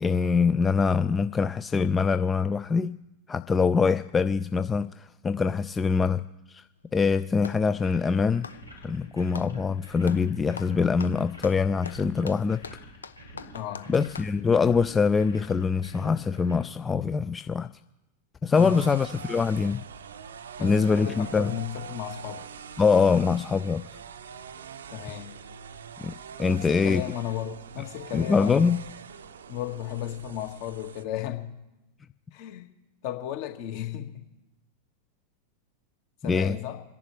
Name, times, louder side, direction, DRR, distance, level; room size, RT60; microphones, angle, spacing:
voice 1, 0.0-2.9 3.3-6.6 6.9-8.5 8.8-12.6 13.9-17.7 18.4-19.8 20.6-21.5 22.8-24.0 26.0-26.1 26.4-27.0 28.1-28.8 36.2-36.6, left 5 dB, 15° left, 12 dB, 0.4 m, -24 dB
Clapping, 6.8-7.7 8.3-9.6 10.0-10.3 10.6-14.4, left 5 dB, 70° left, 0.7 m, -43 dB
sound 1, 7.7-16.6, equal, 85° left, 5.0 m, -47 dB
voice 2, 13.5-13.9 18.6-18.8 20.6-22.5 24.9-25.4 26.5-28.7 29.5-31.5 32.3-32.7 33.0-34.3 36.2-36.8, left 11 dB, 45° left, 5 dB, 1.8 m, -34 dB
sound 2, 18.5-31.0, right 7 dB, 65° right, 0.7 m, -43 dB
27.0 x 11.0 x 3.3 m, 0.98 s
figure-of-eight pair, 90°, 0 cm